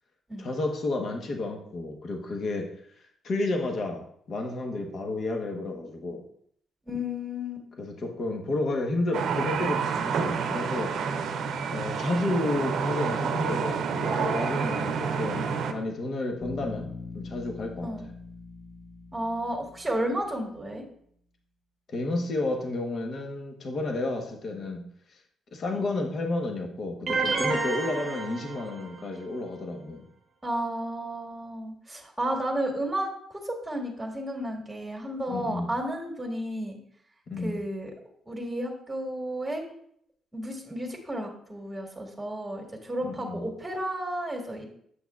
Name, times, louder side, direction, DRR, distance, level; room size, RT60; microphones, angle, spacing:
voice 1, 0.4-2.7 3.2-6.3 7.8-11.3 11.7-16.9 17.1-17.9 21.9-25.2 25.5-30.0 35.3-35.7 37.3-37.6 43.0-43.5, left 2 dB, 55° left, 3 dB, 1.0 m, -31 dB
voice 2, 6.9-7.7 17.8-18.1 19.1-20.8 25.7-25.8 30.4-36.8 37.4-37.9 38.3-39.7 40.3-44.6, equal, 10° right, 0 dB, 1.9 m, -32 dB
sound 1, 9.1-15.7, right 6 dB, 70° right, 0.6 m, -29 dB
Bass guitar, 16.4-20.4, left 4 dB, 20° left, 1.7 m, -42 dB
sound 2, 27.1-29.2, right 4 dB, 35° right, 0.9 m, -30 dB
7.9 x 6.0 x 2.4 m, 0.66 s
cardioid pair, 90°, 0 cm